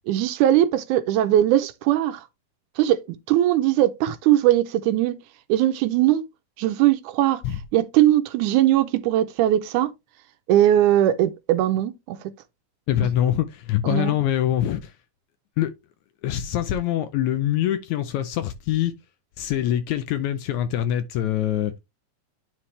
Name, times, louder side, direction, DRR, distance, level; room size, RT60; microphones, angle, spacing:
voice 1, 0.1-2.3 2.8-5.2 5.5-6.2 6.6-7.4 7.7-9.9 10.5-12.2 13.8-14.1, right 13 dB, 80° right, 1.9 m, -20 dB
voice 2, 12.9-14.9 15.6-15.7 16.2-18.9 19.4-21.7, left 11 dB, 75° left, 1.8 m, -24 dB
9.7 x 4.5 x 3.2 m
omnidirectional pair, 3.8 m